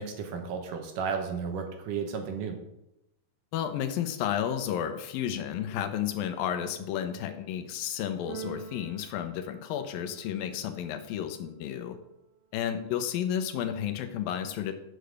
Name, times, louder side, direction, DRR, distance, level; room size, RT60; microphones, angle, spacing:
voice 1, 0.0-2.6, right 6 dB, 70° right, 4 dB, 2.6 m, -33 dB
voice 2, 3.5-12.0 12.5-14.7, left 9 dB, 85° left, 8 dB, 2.6 m, -32 dB
Keyboard (musical), 8.3-10.4, right 8 dB, 85° right, 2.4 m, -45 dB
7.8 x 6.8 x 6.6 m, 0.86 s
omnidirectional pair, 4.2 m